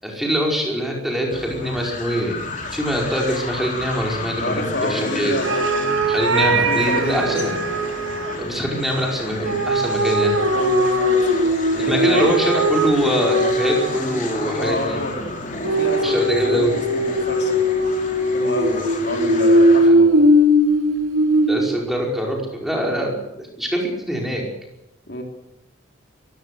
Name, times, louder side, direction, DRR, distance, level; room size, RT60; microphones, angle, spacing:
voice 1, 0.0-5.4 6.1-7.5 8.4-10.3 11.8-15.0 16.0-16.7 19.9-20.0 21.5-24.4, equal, ahead, -1 dB, 5.1 m, -23 dB
sound 1, 1.3-19.9, left 2 dB, 40° left, 3.9 m, -32 dB
voice 2, 4.4-5.5 6.4-7.5 10.5-12.3 14.6-15.3 15.6-17.6 18.3-20.1 25.1-25.2, left 1 dB, 55° left, 3 dB, 3.8 m, -28 dB
sound 2, 5.4-8.4 9.4-14.2 15.6-21.7, equal, 90° right, 3.2 m, -19 dB
22.5 x 16.0 x 8.1 m, 0.86 s
head